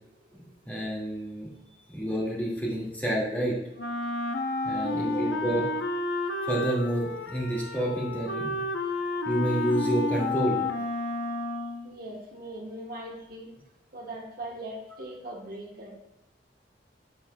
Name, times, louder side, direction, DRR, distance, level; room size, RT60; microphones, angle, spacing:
voice 1, 0.3-1.5 1.9-3.6 4.6-5.6 6.5-8.6 9.2-10.6, right 1 dB, 10° left, -5 dB, 2.1 m, -29 dB
Wind instrument woodwind instrument, 3.8-11.9, left 2 dB, 80° left, 0.7 m, -31 dB
voice 2, 4.7-5.6 11.8-13.5 13.9-15.9, right 1 dB, 55° right, -1 dB, 1.2 m, -40 dB
11.5 x 6.8 x 2.3 m, 0.91 s
head